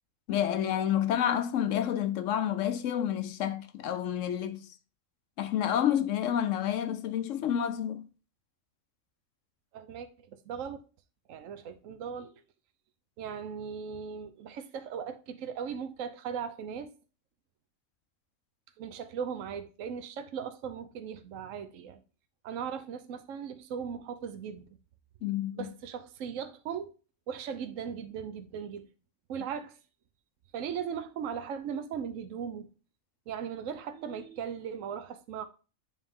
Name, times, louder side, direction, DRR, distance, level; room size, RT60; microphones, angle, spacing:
voice 1, 0.3-4.7 5.4-8.0 25.2-25.7, left 10 dB, 70° left, 0.9 m, -29 dB
voice 2, 9.7-10.8 11.3-12.3 13.2-16.9 18.8-22.0 22.4-24.8 25.5-26.9 27.3-28.9 29.3-29.8 30.5-32.7 33.3-35.5, right 7 dB, 65° right, 1.1 m, -38 dB
9.5 x 3.4 x 3.6 m
omnidirectional pair, 1.5 m